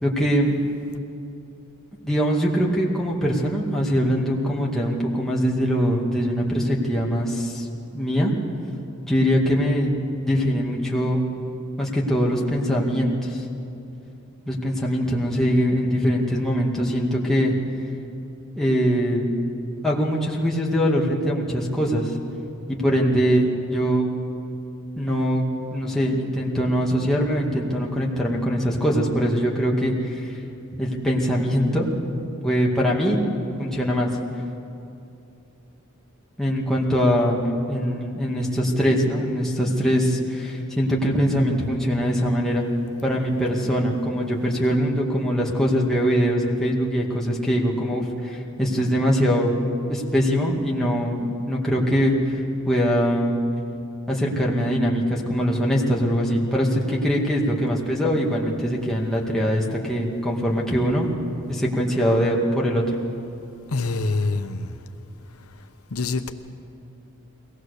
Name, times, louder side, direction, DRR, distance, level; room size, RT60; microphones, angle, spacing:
voice 1, 0.0-0.6 2.0-7.7 7.9-8.3 9.1-9.9 10.3-11.2 11.8-13.4 14.5-17.5 18.6-19.3 19.8-22.1 22.7-24.1 25.0-25.5 25.7-30.3 30.8-31.9 32.4-33.2 33.6-34.1 36.4-42.6 43.0-49.5 49.9-52.4 52.7-53.4 54.1-61.1 61.5-63.0, equal, ahead, -4 dB, 2.2 m, -22 dB
voice 2, 63.7-64.7 65.9-66.3, left 3 dB, 75° left, 7 dB, 0.9 m, -25 dB
22.5 x 18.5 x 6.7 m, 2.7 s
head